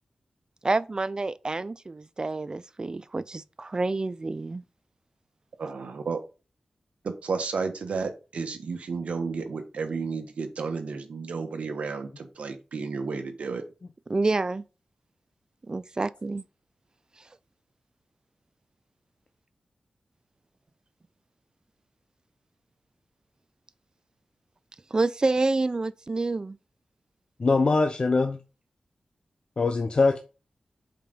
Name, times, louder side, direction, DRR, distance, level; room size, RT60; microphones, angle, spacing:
voice 1, 0.6-4.6 14.1-14.6 15.7-16.4 24.9-26.6, right 3 dB, 40° right, 0.4 m, -28 dB
voice 2, 5.6-6.2 7.0-13.6, right 4 dB, 85° right, 1.2 m, -32 dB
voice 3, 27.4-28.4 29.6-30.2, left 3 dB, 50° left, 0.7 m, -22 dB
5.7 x 5.0 x 5.2 m
cardioid pair, 60°, 2 cm